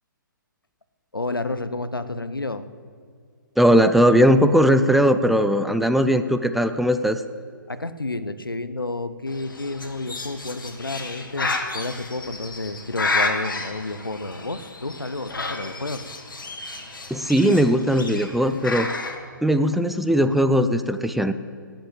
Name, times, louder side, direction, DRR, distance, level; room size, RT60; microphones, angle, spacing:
voice 1, 1.1-2.7 7.7-16.1, left 2 dB, 90° left, 13 dB, 0.9 m, -30 dB
voice 2, 3.6-7.2 17.1-18.9 19.4-21.3, equal, ahead, 8 dB, 0.4 m, -19 dB
Bird, 9.3-19.2, left 3 dB, 70° left, 2.2 m, -31 dB
17.5 x 7.7 x 8.8 m, 2.2 s
figure-of-eight pair, 130°, 11 cm